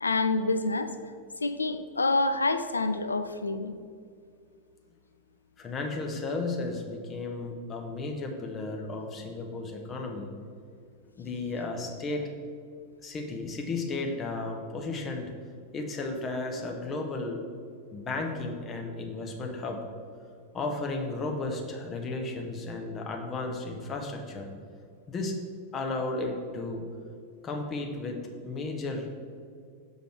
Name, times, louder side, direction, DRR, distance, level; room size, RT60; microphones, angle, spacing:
voice 1, 0.0-0.9 1.4-3.8, left 3 dB, 80° left, 10 dB, 0.3 m, -27 dB
voice 2, 5.6-10.3 11.2-12.2 13.0-15.3 15.7-17.4 17.9-19.8 20.5-24.5 25.1-25.4 25.7-26.8 27.4-29.1, left 3 dB, 25° left, 2 dB, 0.9 m, -34 dB
6.3 x 5.1 x 4.5 m, 2.2 s
figure-of-eight pair, 90°, 0 cm